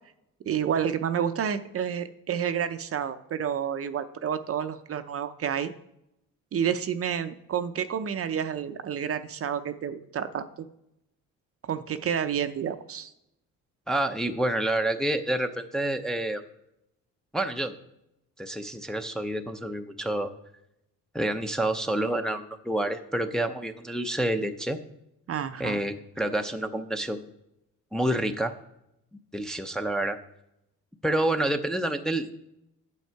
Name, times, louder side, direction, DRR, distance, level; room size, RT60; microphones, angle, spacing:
voice 1, 0.5-5.7 6.5-10.5 11.7-13.1 25.3-25.8, right 8 dB, 45° right, 10 dB, 0.6 m, -29 dB
voice 2, 13.9-16.4 17.3-17.7 18.4-20.3 21.1-24.8 25.6-27.2 27.9-28.5 29.3-30.2 31.0-32.3, right 1 dB, ahead, 5 dB, 0.6 m, -28 dB
8.4 x 7.1 x 4.6 m, 0.83 s
cardioid pair, 105°, 33 cm